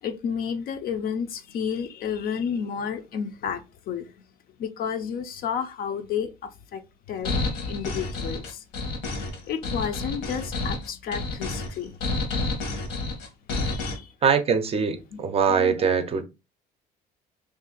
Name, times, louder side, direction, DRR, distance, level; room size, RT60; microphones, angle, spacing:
voice 1, 0.0-4.1 4.6-6.8 7.1-8.6 9.5-12.0 13.7-14.1 15.6-15.9, left 7 dB, 60° left, 0.5 m, -31 dB
sound 1, 7.2-14.0, left 3 dB, 75° left, 1.0 m, -29 dB
voice 2, 14.2-16.2, right 6 dB, 35° right, 0.5 m, -22 dB
2.6 x 2.3 x 3.8 m
cardioid pair, 110°, 17 cm